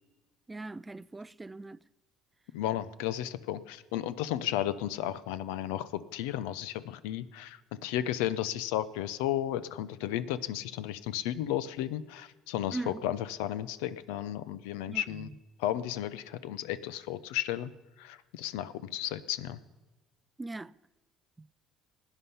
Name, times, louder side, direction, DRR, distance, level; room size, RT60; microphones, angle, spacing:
voice 1, 0.5-1.8 12.7-13.0 14.9-15.3 20.4-20.7 21.4-21.5, right 2 dB, 15° right, 0.3 m, -40 dB
voice 2, 2.5-15.3 15.6-17.7 18.0-19.6, left 12 dB, 90° left, 0.6 m, -34 dB
16.5 x 10.0 x 5.6 m
supercardioid pair, 95°, 0 cm